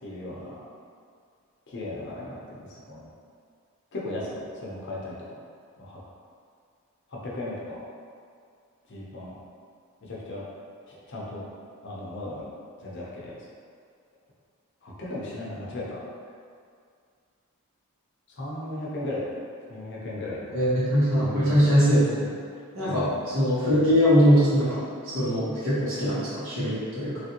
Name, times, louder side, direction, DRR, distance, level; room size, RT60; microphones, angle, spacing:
voice 1, 0.0-0.6 1.7-3.1 3.9-5.2 5.8-6.0 7.1-7.8 8.9-9.4 10.0-10.4 10.9-11.4 11.8-12.5 12.8-13.3 14.8-16.0 18.4-19.2 19.7-20.6 21.2-21.8 22.9-23.2 26.8-26.9, left 1 dB, 55° left, -5 dB, 0.6 m, -36 dB
voice 2, 20.5-22.3 22.7-23.1 23.3-27.2, equal, 65° right, -10 dB, 1.2 m, -22 dB
3.2 x 2.5 x 2.8 m, 2.2 s
head